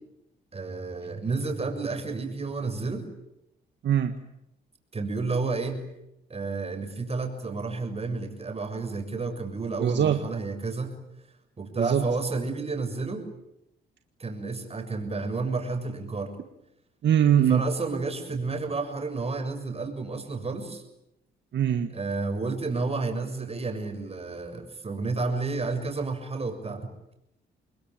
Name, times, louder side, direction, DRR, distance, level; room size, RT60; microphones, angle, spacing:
voice 1, 0.5-3.1 4.9-5.8 6.3-10.9 11.6-13.3 14.2-16.3 17.5-20.8 21.9-26.9, right 3 dB, 30° right, 5 dB, 6.8 m, -31 dB
voice 2, 9.8-10.2 11.7-12.0 17.0-17.6 21.5-21.9, right 9 dB, 65° right, 7 dB, 1.7 m, -22 dB
27.5 x 21.0 x 9.3 m, 0.84 s
cardioid pair, 90°, 20 cm